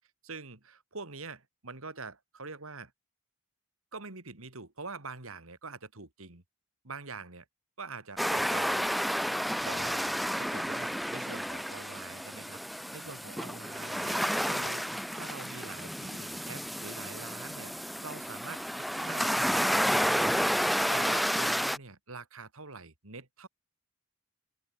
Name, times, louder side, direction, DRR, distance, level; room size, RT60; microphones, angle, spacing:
voice 1, 0.2-2.9 3.9-6.4 6.8-7.4 7.8-9.0 9.3-12.6 12.9-17.7 18.0-18.7 18.9-20.6 20.9-23.5, right 4 dB, 75° right, 2.7 m, -45 dB
sound 1, 8.2-21.8, equal, ahead, 0.5 m, -31 dB
open air
head